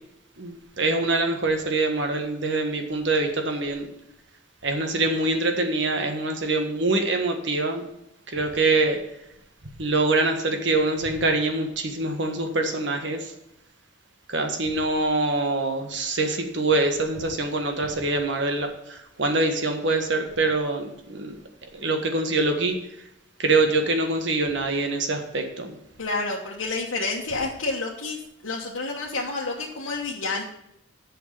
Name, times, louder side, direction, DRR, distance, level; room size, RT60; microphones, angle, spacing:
voice 1, 0.4-3.9 4.6-7.9 8.3-9.0 9.8-13.3 14.3-21.3 21.7-22.8 23.4-25.7, right 2 dB, 60° right, 5 dB, 1.5 m, -24 dB
voice 2, 26.0-28.2 28.4-30.4, left 3 dB, 85° left, -4 dB, 1.3 m, -29 dB
8.2 x 6.5 x 6.8 m, 0.83 s
head